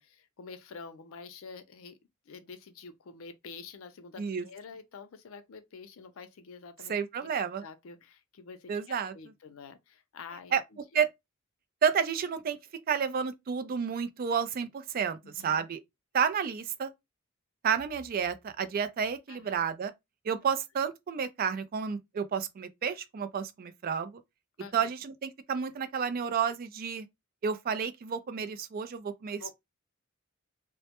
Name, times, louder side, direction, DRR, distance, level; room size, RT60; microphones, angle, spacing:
voice 1, 0.0-2.0 2.3-7.3 7.6-11.0 15.2-15.7 19.3-19.6 24.6-24.9 29.3-29.5, left 5 dB, 80° left, 0.4 m, -48 dB
voice 2, 6.9-7.6 8.7-9.1 10.5-10.6 10.9-11.1 11.8-12.6 12.9-15.8 16.1-16.9 17.6-19.9 20.2-24.2 24.7-27.1 27.4-29.5, right 7 dB, 45° right, 0.3 m, -31 dB
2.1 x 2.1 x 2.8 m
head